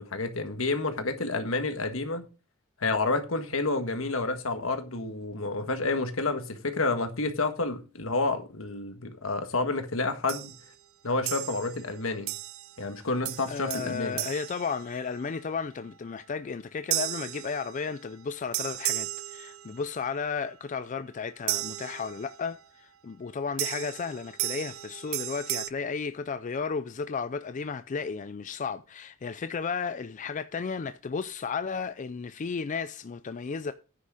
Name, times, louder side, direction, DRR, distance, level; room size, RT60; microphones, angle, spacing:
voice 1, 0.0-2.2 2.8-10.5 11.0-12.3 12.8-14.2, left 3 dB, 75° left, 1.6 m, -29 dB
sound 1, 10.3-10.7 11.3-11.8 12.3-12.8 13.2-15.4 16.9-18.1 18.5-20.0 21.5-22.5 23.6-25.7, right 16 dB, 70° right, 0.5 m, -35 dB
voice 2, 13.5-33.7, left 5 dB, 35° left, 0.4 m, -34 dB
9.8 x 6.3 x 4.9 m
head